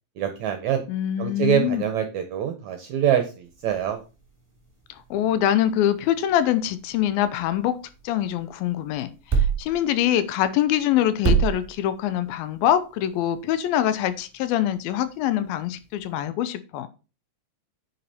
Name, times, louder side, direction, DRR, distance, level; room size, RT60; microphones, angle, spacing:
voice 1, 0.2-0.8 1.2-4.0, right 10 dB, 70° right, 1.8 m, -25 dB
voice 2, 0.9-1.8 5.1-7.8 8.0-9.1 9.6-16.9, left 11 dB, 85° left, 2.6 m, -24 dB
sound 1, 3.4-16.2, right 6 dB, 5° right, 1.7 m, -32 dB
9.6 x 5.3 x 4.2 m
omnidirectional pair, 4.2 m